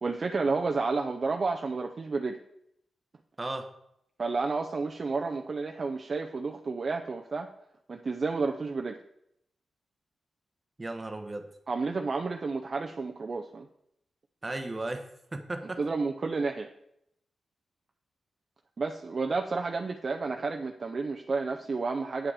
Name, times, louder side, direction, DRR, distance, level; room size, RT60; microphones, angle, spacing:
voice 1, 0.0-2.4 4.2-7.5 7.9-9.0 11.7-13.7 15.8-16.7 18.8-22.3, right 4 dB, 35° right, 4 dB, 0.5 m, -31 dB
voice 2, 3.4-3.7 10.8-11.4 14.4-15.8, right 2 dB, 15° right, 6 dB, 0.9 m, -35 dB
8.8 x 7.7 x 4.8 m, 0.76 s
wide cardioid pair, 175°, 0 cm